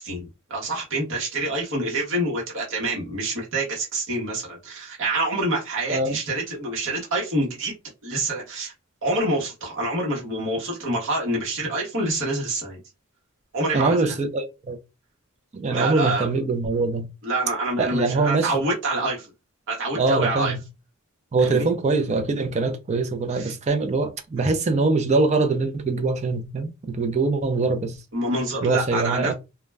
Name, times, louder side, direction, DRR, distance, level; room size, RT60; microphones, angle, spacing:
voice 1, 0.0-7.7 8.0-8.7 9.0-12.8 13.5-14.0 15.7-16.3 17.2-19.3 19.7-20.5 21.4-21.7 23.3-23.5 24.4-24.5 28.1-29.3, right 2 dB, 60° right, 0.9 m, -26 dB
voice 2, 13.7-14.8 15.5-17.1 17.8-18.5 19.9-20.6 21.3-28.0 28.6-29.3, right 3 dB, 30° right, 0.4 m, -23 dB
2.2 x 2.1 x 3.3 m
head